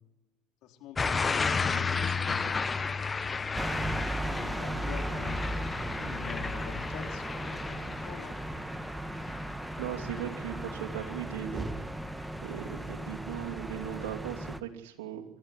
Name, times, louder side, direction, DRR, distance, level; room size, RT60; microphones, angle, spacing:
voice 1, 0.6-2.6 4.0-8.4, left 9 dB, 65° left, 4 dB, 3.5 m, -45 dB
sound 1, 1.0-11.8 12.2-12.6, left 5 dB, 25° left, 1.3 m, -34 dB
sound 2, 3.5-14.6, right 1 dB, 10° right, 1.4 m, -36 dB
voice 2, 9.8-11.7 12.4-15.2, right 10 dB, 75° right, 0 dB, 2.9 m, -38 dB
26.5 x 13.5 x 10.0 m, 1.0 s
hypercardioid pair, 75°, 0 cm